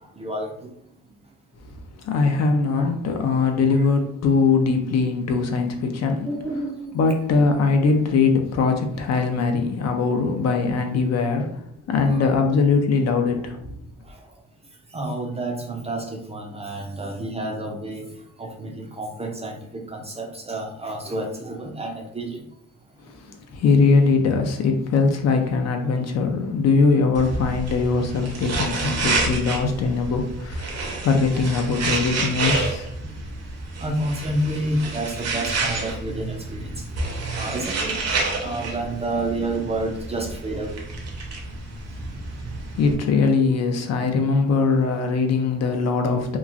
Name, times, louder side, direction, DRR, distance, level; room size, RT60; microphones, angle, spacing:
voice 1, 0.1-0.7 2.7-3.2 3.6-3.9 6.2-6.7 12.1-12.3 14.1-14.2 14.9-18.1 18.4-22.4 33.8-40.8 42.4-42.5, right 1 dB, 20° right, 1 dB, 0.4 m, -30 dB
voice 2, 2.0-6.3 6.9-13.8 23.5-32.9 42.7-46.4, left 4 dB, 60° left, 4 dB, 0.5 m, -21 dB
sound 1, 27.1-42.9, right 3 dB, 55° right, 0.7 m, -29 dB
2.9 x 2.4 x 2.4 m, 0.70 s
cardioid pair, 135°, 30 cm